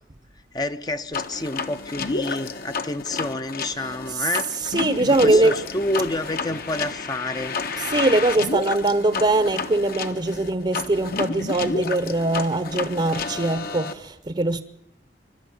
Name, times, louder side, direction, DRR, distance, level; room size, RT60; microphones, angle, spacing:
voice 1, 0.5-4.5 5.1-7.6, left 2 dB, 25° left, 0.7 m, -29 dB
sound 1, 1.1-13.9, left 4 dB, 55° left, 1.2 m, -30 dB
voice 2, 3.8-5.5 7.8-14.6, right 2 dB, 30° right, 0.8 m, -22 dB
24.5 x 12.5 x 9.5 m
head